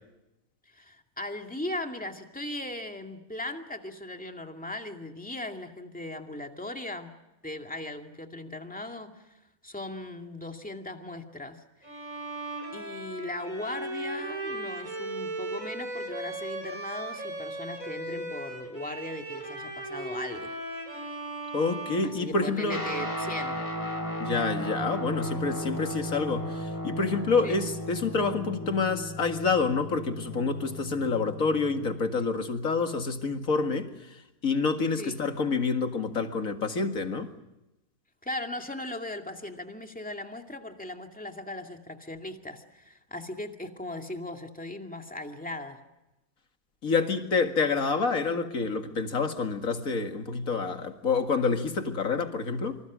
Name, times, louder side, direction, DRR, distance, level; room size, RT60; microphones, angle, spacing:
voice 1, 0.7-7.1 7.4-12.0 12.7-20.5 22.0-23.6 27.4-27.7 35.0-35.2 38.2-45.8, left 1 dB, 5° left, 2.3 m, -38 dB
Bowed string instrument, 11.8-22.8, right 2 dB, 55° right, 6.6 m, -37 dB
voice 2, 21.5-22.8 24.2-33.9 34.4-37.3 46.8-52.8, left 4 dB, 55° left, 2.4 m, -28 dB
Guitar, 22.7-32.3, equal, 10° right, 5.8 m, -35 dB
27.0 x 26.0 x 6.3 m
omnidirectional pair, 1.7 m